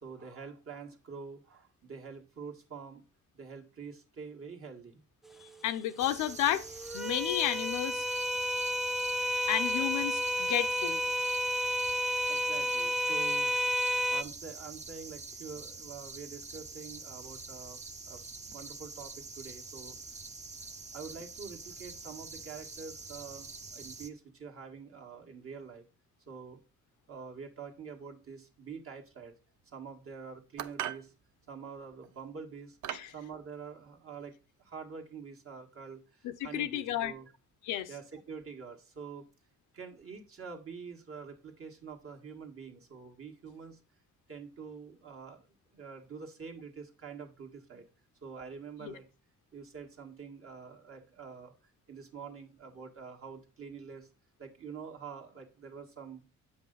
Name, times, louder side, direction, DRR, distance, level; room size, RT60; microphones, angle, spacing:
voice 1, 0.0-3.0 3.3-5.0 12.3-13.5 14.1-17.8 18.0-20.0 20.9-25.9 26.3-26.6 27.1-29.3 29.6-31.1 31.5-32.8 33.1-34.3 34.6-37.3 37.9-39.2 39.7-43.8 44.3-47.8 48.2-49.0 49.5-51.5 51.9-54.1 54.4-56.2, right 5 dB, 45° right, 1.7 m, -46 dB
sound 1, 5.3-14.2, equal, ahead, 0.4 m, -32 dB
voice 2, 5.4-6.6 6.9-8.0 9.5-11.0 32.9-33.1 36.2-37.1 37.6-37.9 48.8-48.9, left 12 dB, 85° left, 0.7 m, -32 dB
sound 2, 6.0-24.1, right 3 dB, 25° right, 0.8 m, -46 dB
sound 3, 30.6-31.1 32.0-32.2 32.8-33.2, right 11 dB, 75° right, 0.6 m, -38 dB
7.8 x 5.2 x 3.9 m
cardioid pair, 90°, 30 cm